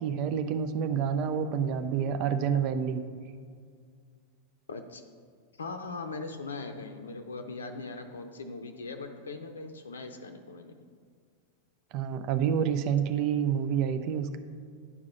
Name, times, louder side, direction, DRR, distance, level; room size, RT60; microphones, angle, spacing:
voice 1, 0.0-3.0 11.9-14.4, right 7 dB, 40° right, 9 dB, 0.6 m, -28 dB
voice 2, 4.7-5.0 5.6-10.8, left 3 dB, 70° left, 6 dB, 0.6 m, -40 dB
10.0 x 4.8 x 5.7 m, 2.1 s
figure-of-eight pair, 90°, 0 cm